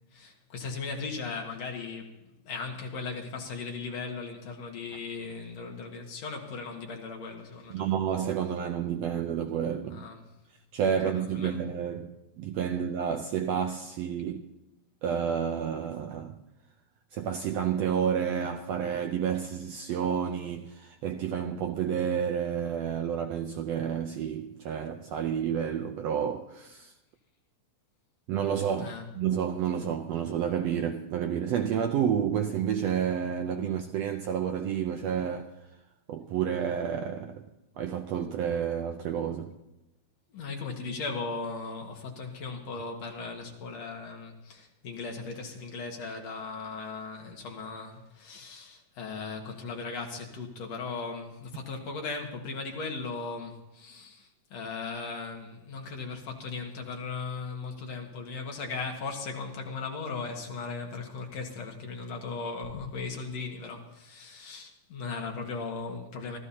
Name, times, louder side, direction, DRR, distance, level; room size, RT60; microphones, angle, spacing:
voice 1, 0.1-2.2 2.4-7.9 9.9-10.2 11.0-11.6 28.8-29.1 40.3-66.4, left 4 dB, 60° left, 2.7 m, -37 dB
voice 2, 7.7-10.0 10.7-14.4 15.0-16.4 17.1-26.9 28.3-35.5 36.1-37.4 37.8-39.5, right 8 dB, 75° right, 1.6 m, -30 dB
25.5 x 14.5 x 2.8 m
omnidirectional pair, 3.6 m